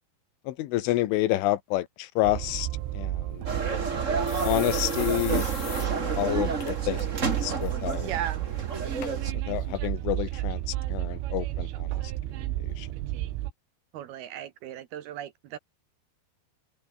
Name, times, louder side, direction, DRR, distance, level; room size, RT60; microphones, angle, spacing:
voice 1, 0.5-2.7 3.0-3.5 4.4-5.5 5.8-7.1 7.4-8.1 9.5-12.0 12.6-12.9, left 16 dB, 90° left, 3.7 m, -29 dB
Train, 2.2-13.5, right 15 dB, 85° right, 3.9 m, -32 dB
sound 1, 3.3-3.4 3.8-3.9 4.3-5.9 6.2-6.3 6.6-7.0 7.4-7.7 8.4-8.5 9.0-9.1 9.9-10.0, left 14 dB, 70° left, 3.4 m, -41 dB
sound 2, 3.4-9.3, right 4 dB, 40° right, 1.0 m, -31 dB
voice 2, 8.0-8.5 13.9-15.6, right 11 dB, 70° right, 2.7 m, -36 dB
omnidirectional pair, 5.5 m